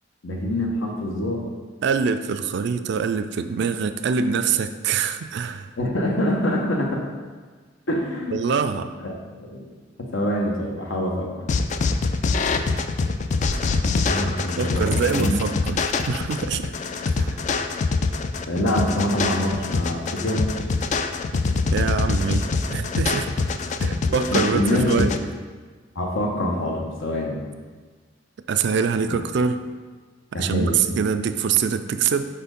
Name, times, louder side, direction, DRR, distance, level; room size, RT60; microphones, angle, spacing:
voice 1, 0.2-1.5 5.8-7.0 7.9-8.5 9.0-9.1 9.4-9.7 10.0-11.3 14.0-15.4 18.5-20.5 23.9-24.9 25.9-27.4 29.1-29.2 30.3-30.8, left 1 dB, 75° left, 1 dB, 1.0 m, -25 dB
voice 2, 1.8-5.7 8.3-8.9 14.6-16.7 17.2-17.4 21.5-23.3 23.8-25.1 28.5-29.6 30.3-32.2, right 6 dB, 60° right, 10 dB, 0.3 m, -24 dB
sound 1, 11.5-25.2, left 4 dB, 40° left, 0.3 m, -24 dB
5.1 x 4.3 x 5.2 m, 1.5 s
head